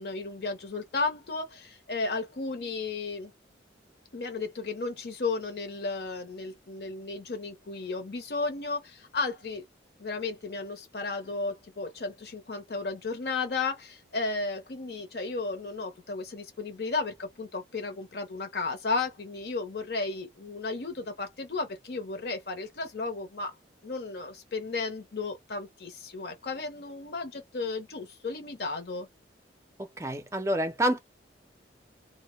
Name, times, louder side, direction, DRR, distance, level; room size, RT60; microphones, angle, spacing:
voice 1, 0.0-3.3 4.1-9.6 10.0-23.5 23.8-29.1, left 3 dB, 55° left, 0.7 m, -34 dB
voice 2, 30.0-31.0, right 1 dB, 15° right, 0.4 m, -27 dB
2.1 x 2.1 x 3.1 m
head